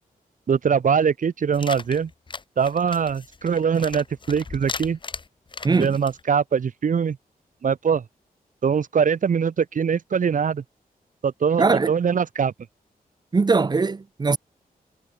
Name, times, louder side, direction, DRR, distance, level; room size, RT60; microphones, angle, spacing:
voice 1, 0.5-2.1 2.6-5.0 5.7-7.2 7.6-8.0 8.6-10.6 11.2-12.5, right 6 dB, 55° right, 1.1 m, -22 dB
sound 1, 1.5-6.2, left 4 dB, 30° left, 1.0 m, -37 dB
voice 2, 5.6-6.0 11.6-11.9 13.3-14.4, right 4 dB, 25° right, 0.6 m, -20 dB
wide cardioid pair, 140°, 16 cm